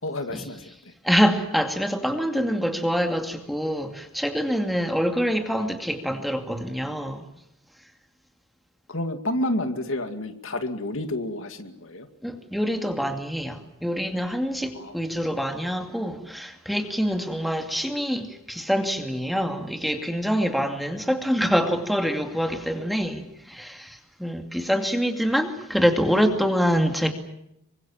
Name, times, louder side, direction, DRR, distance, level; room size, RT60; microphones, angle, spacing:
voice 1, 0.0-0.9 8.9-12.1 14.7-15.0, left 1 dB, 65° left, 2.3 m, -30 dB
voice 2, 1.0-7.3 12.2-27.1, equal, ahead, 2.4 m, -25 dB
26.5 x 24.5 x 7.3 m
head